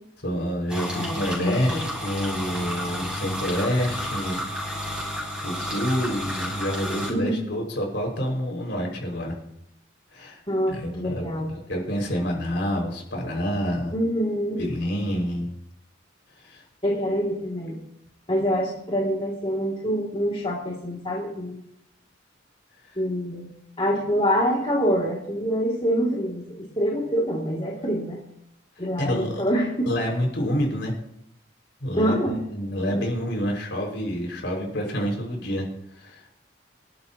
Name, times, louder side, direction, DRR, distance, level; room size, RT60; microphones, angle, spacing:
voice 1, 0.2-4.4 4.8-5.0 5.4-9.4 10.1-10.4 10.7-13.9 14.6-15.5 16.4-16.6 29.0-29.4 29.9-30.9 31.8-32.2 32.5-35.7 36.0-36.2, equal, 70° left, 0 dB, 5.6 m, -28 dB
sound 1, 0.7-7.1, equal, 5° right, 7.1 m, -31 dB
voice 2, 0.9-1.8 7.1-7.4 10.5-11.5 13.9-14.6 16.8-17.8 18.3-21.6 23.0-23.5 23.8-28.2 28.8-29.9 32.0-32.4 32.9-33.0, equal, 30° left, -4 dB, 2.5 m, -25 dB
26.0 x 12.5 x 3.0 m, 0.76 s
head